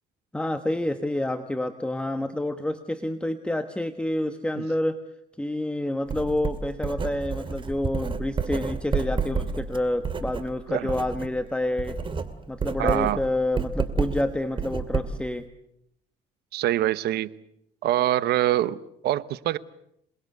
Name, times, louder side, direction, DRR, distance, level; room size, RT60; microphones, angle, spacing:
voice 1, 0.3-5.0 5.4-12.0 12.5-15.5, left 1 dB, 5° left, 8 dB, 1.3 m, -28 dB
Writing, 6.1-11.4 11.6-15.4, right 5 dB, 30° right, 2.4 m, -30 dB
voice 2, 12.8-13.2 16.5-17.3 17.8-19.6, right 13 dB, 70° right, 17 dB, 1.0 m, -25 dB
28.0 x 20.5 x 8.1 m, 0.76 s
cardioid pair, 110°, 17 cm